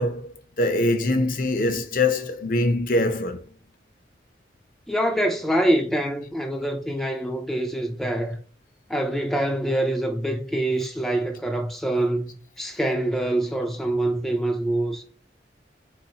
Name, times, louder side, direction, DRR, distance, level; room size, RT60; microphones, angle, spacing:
voice 1, 0.0-3.5, left 2 dB, 50° left, 0.6 m, -23 dB
voice 2, 4.9-8.4 8.9-12.3 12.6-15.0, right 1 dB, ahead, 0.4 m, -25 dB
4.1 x 3.9 x 2.8 m
head